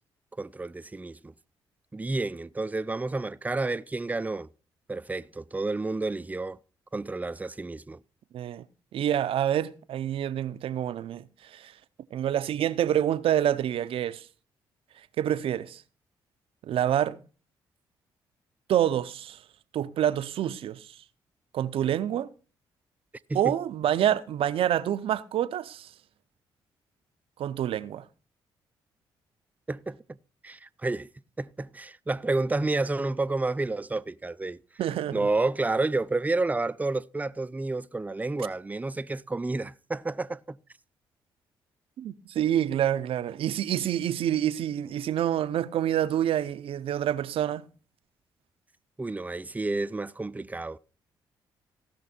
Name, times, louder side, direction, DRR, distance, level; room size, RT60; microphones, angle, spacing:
voice 1, 0.4-1.3 1.9-4.5 4.9-6.6 6.9-8.0 23.3-23.6 29.7-30.0 30.4-31.1 31.4-34.6 35.1-40.6 49.0-50.8, right 3 dB, 15° right, 0.5 m, -30 dB
voice 2, 8.3-8.6 8.9-11.7 12.1-14.2 15.2-15.8 16.6-17.2 18.7-19.4 19.7-20.9 21.5-22.3 23.3-25.9 27.4-28.0 34.8-35.3 42.0-47.7, right 11 dB, 70° right, 0.6 m, -27 dB
17.0 x 5.9 x 4.3 m
supercardioid pair, 55°, 10 cm